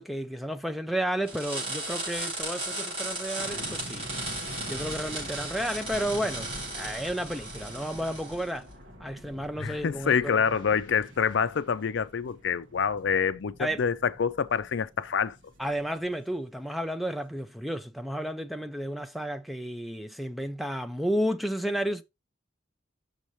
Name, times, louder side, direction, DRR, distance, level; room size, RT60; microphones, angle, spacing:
voice 1, 0.0-4.1 4.7-8.7 9.0-10.6 13.6-13.8 15.6-22.0, equal, ahead, 0.4 m, -32 dB
sound 1, 1.3-8.5, right 2 dB, 30° right, 5.0 m, -36 dB
sound 2, 3.4-16.5 16.8-17.0, equal, 60° right, 1.6 m, -45 dB
voice 2, 9.6-15.4, left 6 dB, 65° left, 0.4 m, -27 dB
6.6 x 6.4 x 3.1 m
head